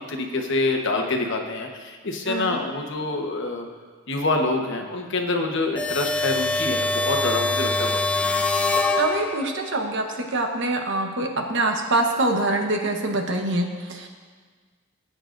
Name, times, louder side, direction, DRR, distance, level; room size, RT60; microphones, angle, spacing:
voice 1, 0.0-3.7 4.1-8.3, left 2 dB, 60° left, 2 dB, 1.1 m, -26 dB
voice 2, 2.3-2.6 9.0-14.1, right 2 dB, 60° right, 3 dB, 1.1 m, -25 dB
sound 1, 5.8-9.7, left 3 dB, 5° left, 0.4 m, -24 dB
18.5 x 8.9 x 2.6 m, 1.5 s
head